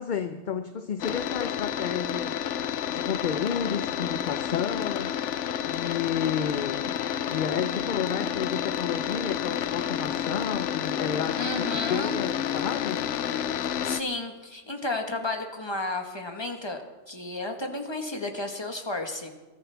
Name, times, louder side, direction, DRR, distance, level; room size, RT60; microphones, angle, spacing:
voice 1, 0.0-2.4 2.9-5.1 5.7-7.0 7.3-11.6 11.9-13.1, left 8 dB, 50° left, 9 dB, 0.6 m, -31 dB
sound 1, 1.0-14.0, left 9 dB, 80° left, 1.0 m, -30 dB
voice 2, 11.3-12.2 13.8-19.3, left 2 dB, 20° left, 4 dB, 1.5 m, -32 dB
22.5 x 14.0 x 3.5 m, 1.2 s
omnidirectional pair, 1.2 m